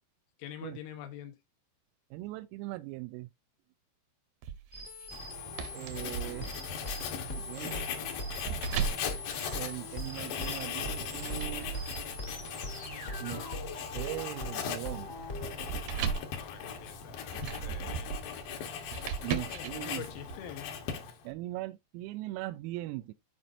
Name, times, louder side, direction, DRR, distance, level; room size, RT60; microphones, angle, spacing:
voice 1, 0.4-1.4 16.3-17.4 17.6-18.1 19.5-20.8, left 10 dB, 90° left, 4.2 m, -45 dB
voice 2, 2.1-3.3 5.7-6.5 7.3-7.8 9.5-11.7 13.2-13.7 13.9-15.1 17.8-18.0 19.2-20.0 21.2-23.1, right 19 dB, 90° right, 3.3 m, -40 dB
sound 1, 4.4-10.2 10.8-20.3, right 7 dB, 75° right, 2.5 m, -39 dB
sound 2, 4.7-15.5, left 1 dB, 55° left, 0.8 m, -41 dB
Writing, 5.1-21.3, left 7 dB, 70° left, 2.1 m, -39 dB
13.5 x 5.2 x 2.7 m
omnidirectional pair, 6.0 m